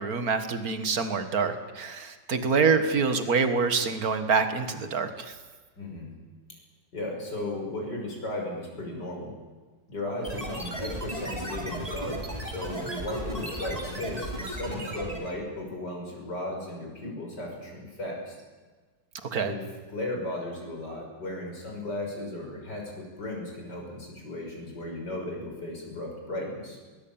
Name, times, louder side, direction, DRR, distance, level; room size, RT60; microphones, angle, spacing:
voice 1, 0.0-5.4 19.2-19.5, right 5 dB, 50° right, 9 dB, 2.2 m, -26 dB
voice 2, 5.8-6.1 6.9-9.3 9.9-18.3 19.4-19.6 19.9-26.8, left 1 dB, 60° left, 0 dB, 6.4 m, -35 dB
sound 1, 10.2-15.4, right 1 dB, 20° right, 3.3 m, -35 dB
21.5 x 20.0 x 8.9 m, 1.4 s
omnidirectional pair, 2.0 m